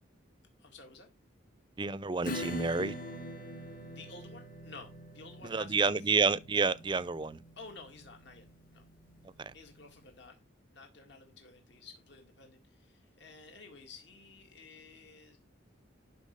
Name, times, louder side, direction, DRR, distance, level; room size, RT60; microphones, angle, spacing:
voice 1, 0.6-1.1 3.9-6.2 7.6-8.8 9.5-10.5 10.7-15.4, left 3 dB, 60° left, 2.2 m, -52 dB
voice 2, 1.8-2.9 5.4-7.4 9.4-9.5, right 4 dB, 25° right, 0.4 m, -29 dB
Acoustic guitar / Strum, 2.2-9.5, equal, 45° left, 1.7 m, -43 dB
12.0 x 4.4 x 5.3 m
head